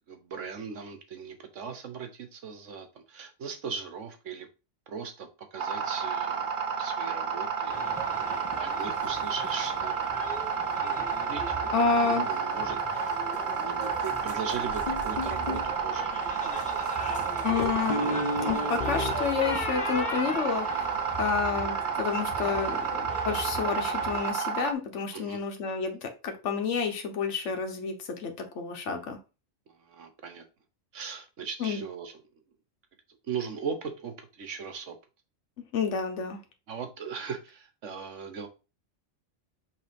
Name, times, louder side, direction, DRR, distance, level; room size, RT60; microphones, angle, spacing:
voice 1, 0.1-4.5 4.9-6.5 6.8-8.0 8.2-9.9 10.2-10.3 11.3-11.4 12.0-13.1 13.6-16.2 25.1-25.4 29.7-30.4 30.9-32.2 33.3-34.9 36.7-38.5, right 6 dB, 75° right, 7 dB, 1.4 m, -38 dB
sound 1, 5.6-24.7, right 6 dB, 50° right, 0.8 m, -31 dB
sound 2, 7.7-24.3, right 1 dB, 5° left, 1.6 m, -40 dB
voice 2, 11.7-12.3 17.4-20.9 21.2-29.2 31.6-31.8 35.6-36.4, left 5 dB, 70° left, 5 dB, 1.4 m, -30 dB
sound 3, 14.9-15.7 17.6-21.4, left 3 dB, 45° left, 0.8 m, -33 dB
5.8 x 3.4 x 5.2 m, 0.31 s
omnidirectional pair, 1.3 m